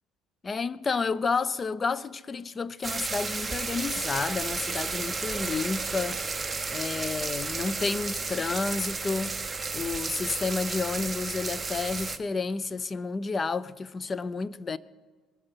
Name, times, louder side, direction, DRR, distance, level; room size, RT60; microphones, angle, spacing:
voice 1, 0.4-6.2 6.7-9.4 9.7-14.8, left 4 dB, 30° left, 0.5 m, -30 dB
sound 1, 2.8-12.2, right 4 dB, 20° right, 0.8 m, -33 dB
22.0 x 7.8 x 5.6 m
supercardioid pair, 95°, 0 cm